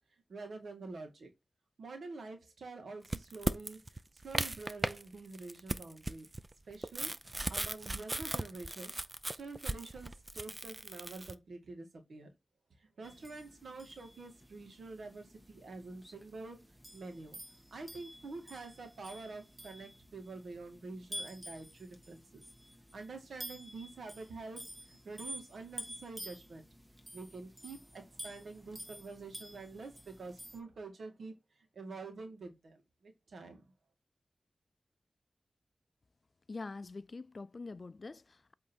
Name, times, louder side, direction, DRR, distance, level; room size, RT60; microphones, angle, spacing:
voice 1, 0.3-1.3 1.8-6.3 6.7-7.1 7.5-9.0 9.3-12.3 12.8-17.4 17.7-22.4 22.9-26.7 27.1-33.6, right 3 dB, 90° right, 2.1 m, -47 dB
sound 1, 3.0-5.0 5.3-11.3, right 2 dB, 30° right, 0.7 m, -37 dB
sound 2, 13.0-30.6, equal, 15° right, 1.8 m, -50 dB
voice 2, 36.5-38.6, left 3 dB, 55° left, 0.4 m, -45 dB
8.3 x 3.7 x 4.5 m
cardioid pair, 45°, 0 cm